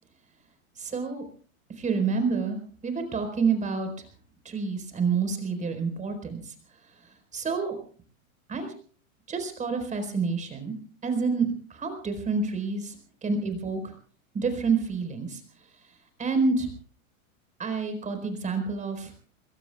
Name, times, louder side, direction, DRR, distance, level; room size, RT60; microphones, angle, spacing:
voice 1, 0.8-1.3 1.8-2.6 2.8-3.9 4.4-6.5 7.3-7.8 8.5-8.7 9.3-10.7 11.0-13.0 13.2-13.9 14.3-15.4 16.2-16.7 17.6-19.1, right 4 dB, 15° right, 6 dB, 4.5 m, -28 dB
27.5 x 22.0 x 2.4 m, 0.43 s
hypercardioid pair, 135°, 43 cm